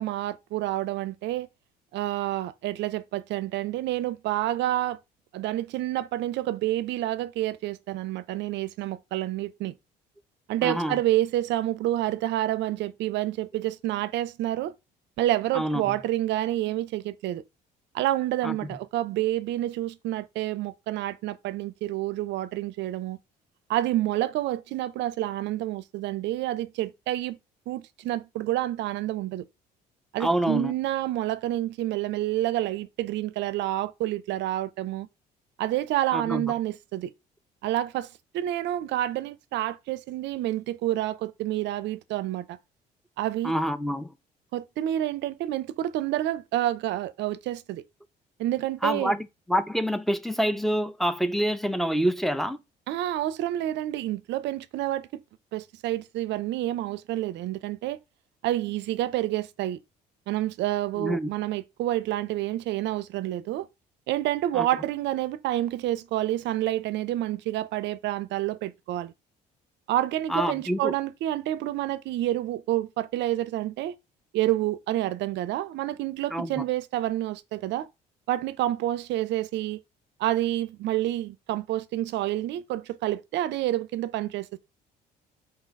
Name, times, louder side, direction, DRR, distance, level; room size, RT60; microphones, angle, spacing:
voice 1, 0.0-1.5 1.9-5.0 5.3-9.7 10.5-14.7 15.2-17.4 17.9-23.2 23.7-27.4 27.7-29.4 30.1-35.1 35.6-37.1 37.6-42.6 43.2-43.5 44.5-47.8 48.4-49.1 52.9-55.2 55.5-58.0 58.4-59.8 60.3-63.7 64.1-69.1 69.9-74.0 74.3-77.9 78.3-79.8 80.2-84.6, right 14 dB, 60° right, 0.5 m, -28 dB
voice 2, 10.6-11.0 15.5-15.9 18.4-18.8 30.2-30.7 36.1-36.5 43.4-44.1 48.8-52.6 61.0-61.3 64.5-64.7 70.3-70.9 76.3-76.6, equal, ahead, 0.5 m, -27 dB
3.9 x 2.8 x 4.0 m
hypercardioid pair, 55°, 21 cm